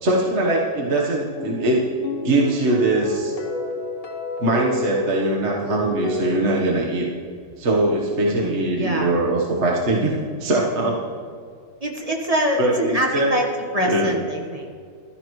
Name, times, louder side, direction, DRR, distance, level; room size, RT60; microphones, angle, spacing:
voice 1, 0.0-1.8 2.2-3.3 4.4-7.1 7.6-10.1 10.4-11.0 12.6-13.3 13.8-14.1, right 1 dB, 40° right, -3 dB, 1.4 m, -21 dB
sound 1, 1.4-6.4, equal, 35° left, 1.1 m, -28 dB
voice 2, 8.2-9.1 11.8-13.5 13.7-14.7, equal, 20° right, 1 dB, 1.1 m, -24 dB
15.0 x 13.0 x 3.2 m, 2.2 s
omnidirectional pair, 2.2 m